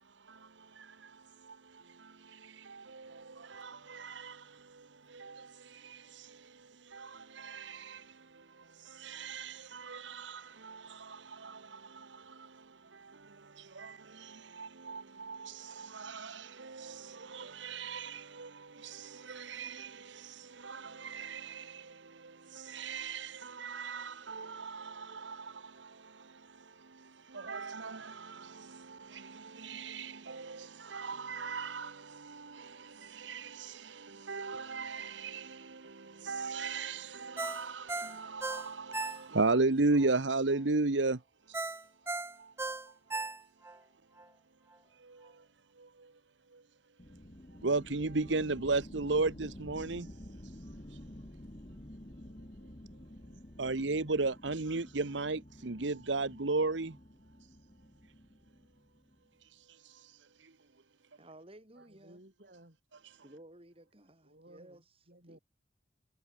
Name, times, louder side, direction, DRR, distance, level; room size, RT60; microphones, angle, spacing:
voice 1, 0.2-41.2 41.5-41.7 42.1-42.5 45.0-45.4 45.8-46.1 46.5-46.6 47.6-50.1 50.9-51.0 53.6-57.0 59.5-60.5 63.0-63.2, right 3 dB, 75° right, 1.2 m, -37 dB
Ringtone, 37.4-39.6 40.0-40.1 41.5-43.8 44.2-44.3, right 3 dB, 15° right, 0.7 m, -37 dB
sound 1, 47.0-59.3, left 1 dB, 30° left, 2.1 m, -51 dB
voice 2, 61.2-62.2 63.2-65.4, right 1 dB, 30° right, 6.0 m, -56 dB
voice 3, 61.9-62.8 64.2-64.8 65.1-65.4, right 1 dB, 55° right, 6.9 m, -57 dB
head